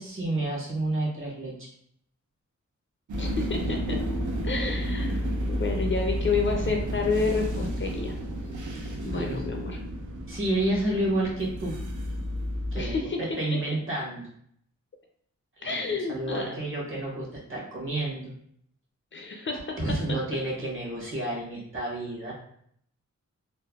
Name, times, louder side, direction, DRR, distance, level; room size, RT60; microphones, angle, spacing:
voice 1, 0.0-1.7 9.1-9.4 10.3-11.8 12.7-12.9 13.4-14.3 15.6-18.3 19.8-22.3, right 1 dB, 45° right, -4 dB, 1.0 m, -30 dB
sound 1, 3.1-13.0, equal, 85° right, 0.6 m, -31 dB
voice 2, 3.2-4.0 4.4-8.1 9.0-9.8 12.8-13.2 15.6-16.5 19.1-19.8, left 4 dB, 45° left, 2 dB, 0.4 m, -30 dB
3.2 x 2.0 x 2.3 m, 0.68 s
wide cardioid pair, 100°, 29 cm